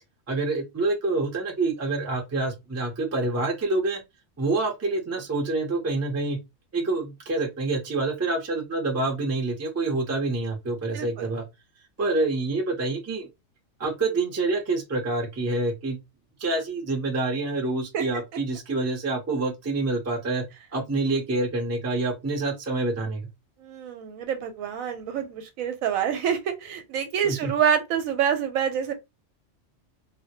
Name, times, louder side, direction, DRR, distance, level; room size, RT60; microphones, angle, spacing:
voice 1, 0.3-4.0 4.4-6.4 6.7-11.4 12.0-13.3 13.8-16.0 16.4-20.4 20.7-23.3 27.2-27.5, right 2 dB, 25° right, 0.3 m, -27 dB
voice 2, 10.9-11.3 17.9-18.1 23.6-28.9, right 8 dB, 85° right, 1.0 m, -27 dB
2.1 x 2.1 x 2.8 m
omnidirectional pair, 1.4 m